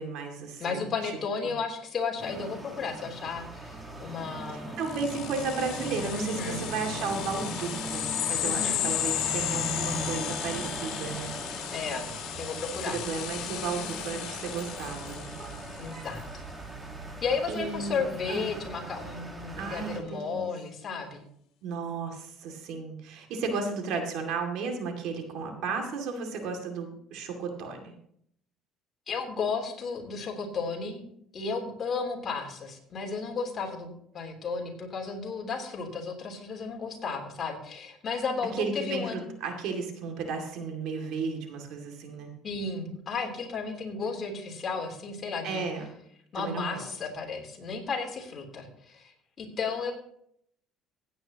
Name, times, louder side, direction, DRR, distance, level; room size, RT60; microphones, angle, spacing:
voice 1, 0.0-1.1 1.4-1.6 4.5-11.4 12.8-15.4 17.5-18.5 19.6-20.5 21.6-27.9 38.5-42.3 45.4-45.9 46.3-46.8, right 4 dB, 70° right, 3 dB, 2.4 m, -34 dB
voice 2, 0.6-4.7 6.0-6.6 8.4-8.8 11.7-12.1 12.4-13.0 15.8-16.2 17.2-21.2 29.1-31.0 31.3-39.3 42.4-45.6 46.3-49.1 49.4-49.9, left 5 dB, 35° left, 1 dB, 3.4 m, -33 dB
sound 1, 2.2-20.0, right 1 dB, 15° right, 1.6 m, -39 dB
sound 2, 4.8-15.9, left 12 dB, 70° left, 1.9 m, -34 dB
16.0 x 9.2 x 3.0 m, 0.68 s
cardioid pair, 120°, 0 cm